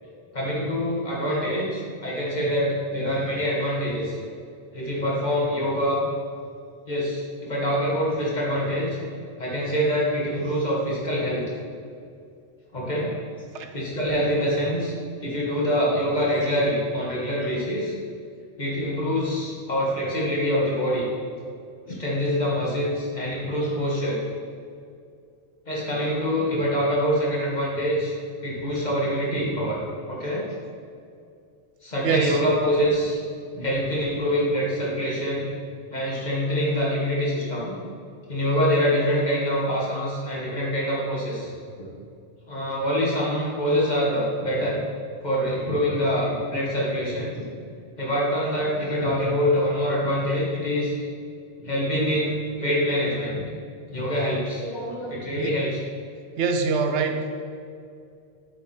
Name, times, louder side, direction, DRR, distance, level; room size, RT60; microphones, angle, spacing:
voice 1, 0.3-4.2 4.7-6.0 6.9-9.0 9.4-11.4 12.7-13.1 13.7-14.9 15.2-18.0 18.6-21.1 21.9-24.2 25.7-28.1 28.4-29.8 30.1-30.5 31.8-33.2 33.5-35.5 35.9-37.8 38.3-41.5 41.8-41.9 42.5-44.8 45.2-47.6 48.0-51.0 51.6-53.4 53.9-55.8, equal, 40° left, -5 dB, 1.9 m, -25 dB
voice 2, 32.0-32.4 55.4-55.6 56.4-57.4, right 4 dB, 90° right, 6 dB, 1.0 m, -25 dB
8.1 x 4.9 x 4.4 m, 2.4 s
omnidirectional pair, 1.2 m